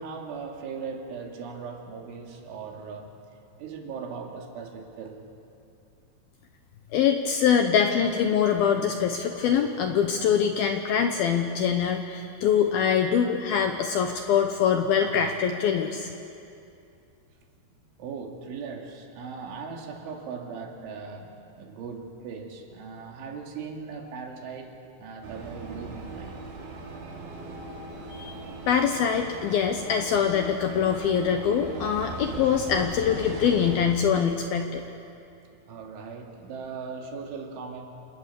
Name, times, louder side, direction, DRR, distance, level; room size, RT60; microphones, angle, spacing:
voice 1, 0.0-3.1 3.6-5.3 18.0-26.5 35.7-37.9, right 5 dB, 80° right, 1 dB, 4.9 m, -39 dB
voice 2, 6.9-16.1 28.1-28.3 28.7-34.8, left 7 dB, 70° left, 5 dB, 2.3 m, -24 dB
sound 1, 25.2-34.0, right 3 dB, 65° right, 4.8 m, -39 dB
28.5 x 27.5 x 6.9 m, 2.6 s
omnidirectional pair, 5.5 m